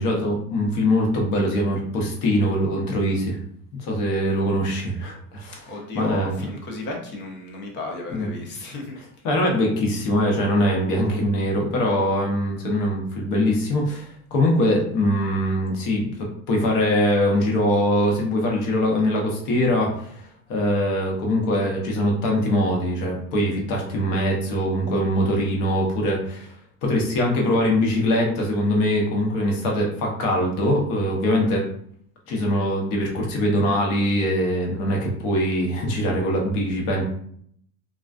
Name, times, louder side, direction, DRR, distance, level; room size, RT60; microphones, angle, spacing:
voice 1, 0.0-3.4 3.8-6.5 8.1-8.3 8.9-20.1 20.5-26.5 26.8-31.6 32.3-37.0, equal, 50° left, 0 dB, 0.8 m, -22 dB
voice 2, 5.7-9.0, left 2 dB, 30° left, 1 dB, 0.5 m, -34 dB
2.3 x 2.2 x 2.4 m, 0.65 s
supercardioid pair, 145°, 40 cm